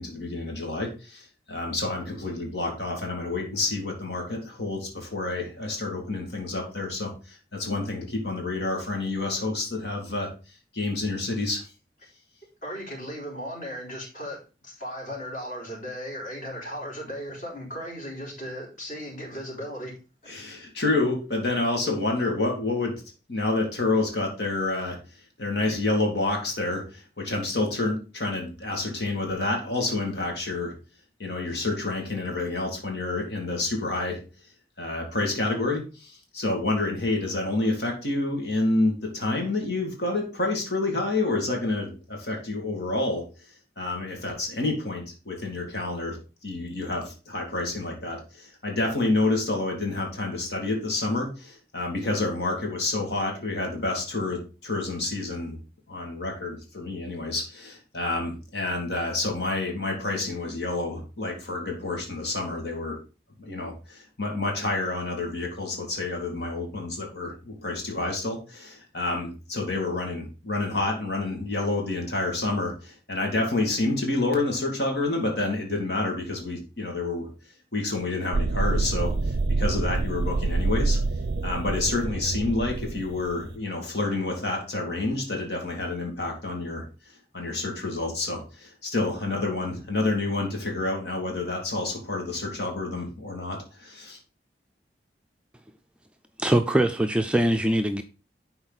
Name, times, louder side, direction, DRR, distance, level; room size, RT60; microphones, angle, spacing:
voice 1, 0.0-10.3 10.7-11.7 20.3-23.0 23.3-25.0 25.4-30.7 31.2-34.2 34.8-43.2 43.8-46.2 46.4-55.6 55.9-63.0 63.4-77.3 77.7-81.0 81.4-86.8 87.3-94.2, left 2 dB, 70° left, 2.3 m, -28 dB
voice 2, 12.6-20.0 20.2-20.3, equal, 45° left, 4.3 m, -36 dB
sound 1, 78.3-83.5, right 3 dB, 65° right, 0.4 m, -26 dB
voice 3, 96.4-98.0, right 1 dB, 5° right, 0.4 m, -22 dB
11.0 x 4.4 x 4.0 m
head